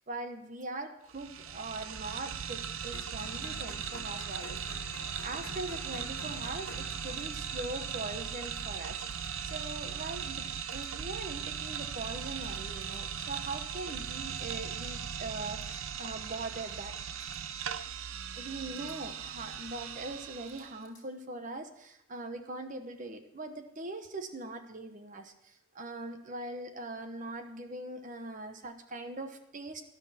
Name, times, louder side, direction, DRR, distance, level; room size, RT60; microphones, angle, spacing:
voice 1, 0.0-4.9 5.2-9.0 9.4-16.9 18.3-29.8, right 2 dB, 40° right, 7 dB, 1.0 m, -41 dB
sound 1, 1.1-20.8, right 7 dB, 85° right, 0.7 m, -39 dB
sound 2, 2.9-9.0, left 5 dB, 75° left, 0.6 m, -50 dB
sound 3, 4.4-4.6 6.7-7.4 9.1-9.4 10.7-11.0 12.4-13.0 14.3-14.6 15.6-15.8 17.2-17.4 18.7-19.0 20.4-21.0, left 4 dB, 20° left, 2.5 m, -62 dB
13.0 x 11.5 x 4.3 m, 0.84 s
head